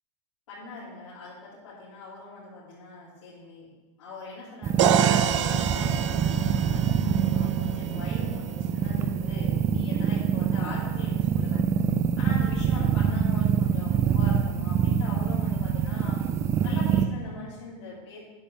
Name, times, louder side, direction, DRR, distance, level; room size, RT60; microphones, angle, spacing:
voice 1, 0.5-3.7 4.0-11.6 12.2-16.2 16.6-18.2, left 2 dB, 85° left, -9 dB, 3.4 m, -42 dB
sound 1, 4.6-17.0, right 7 dB, 20° right, 0.4 m, -25 dB
sound 2, 4.8-8.6, right 10 dB, 80° right, 0.7 m, -28 dB
12.5 x 8.4 x 3.5 m, 1.2 s
supercardioid pair, 155°, 16 cm